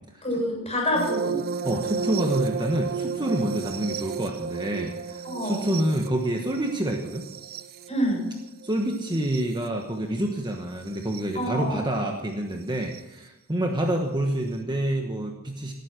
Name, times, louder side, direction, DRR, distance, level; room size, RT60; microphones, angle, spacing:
voice 1, 0.2-1.4 5.2-5.6 7.9-8.2 11.3-11.9, equal, 30° left, -1 dB, 7.0 m, -27 dB
sound 1, 0.9-9.6 10.9-11.2 12.9-13.0, right 5 dB, 45° right, 0.6 m, -33 dB
voice 2, 1.6-7.3 8.6-15.7, right 1 dB, 20° right, 3 dB, 1.2 m, -27 dB
18.0 x 9.5 x 6.1 m, 0.97 s
head